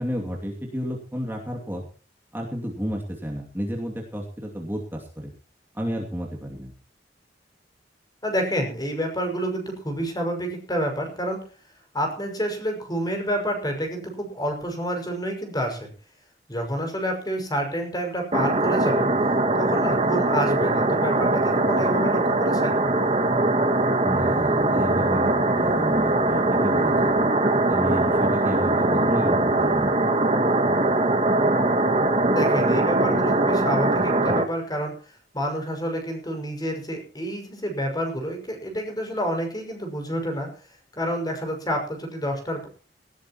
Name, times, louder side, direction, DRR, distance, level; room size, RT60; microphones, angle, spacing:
voice 1, 0.0-1.9 2.3-5.3 5.7-6.7 24.0-27.2 27.7-29.9, equal, 10° right, -1 dB, 2.6 m, -31 dB
voice 2, 8.2-11.4 11.9-15.9 16.5-19.1 19.5-22.7 32.3-34.9 35.3-40.5 41.0-42.7, equal, 20° left, 3 dB, 6.0 m, -28 dB
sound 1, 18.3-34.4, right 2 dB, 35° right, 2.1 m, -21 dB
18.5 x 17.5 x 3.1 m, 0.40 s
head